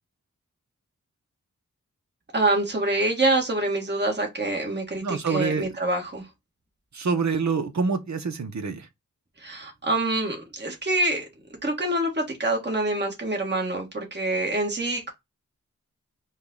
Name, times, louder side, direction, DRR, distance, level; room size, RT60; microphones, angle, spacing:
voice 1, 2.3-6.3 9.4-11.3 11.6-15.1, right 2 dB, 35° right, 1.8 m, -26 dB
voice 2, 5.0-5.7 6.9-8.9, right 5 dB, 60° right, 1.0 m, -26 dB
5.2 x 2.5 x 3.9 m
cardioid pair, 45°, 32 cm